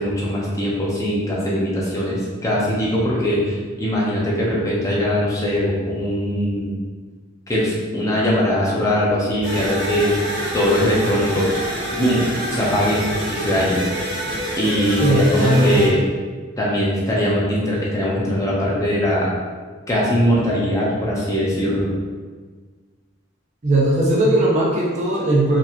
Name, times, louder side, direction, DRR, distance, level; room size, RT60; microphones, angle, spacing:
voice 1, 0.0-6.7 7.5-10.1 10.5-11.6 12.0-12.2 12.5-13.8 14.6-16.0 16.6-19.3 19.9-21.9, equal, 15° left, -6 dB, 0.8 m, -21 dB
sound 1, 9.4-15.9, equal, 80° right, 1.2 m, -27 dB
voice 2, 15.0-15.9 23.6-25.6, right 1 dB, 35° right, -3 dB, 0.6 m, -18 dB
4.5 x 2.9 x 2.6 m, 1.5 s
head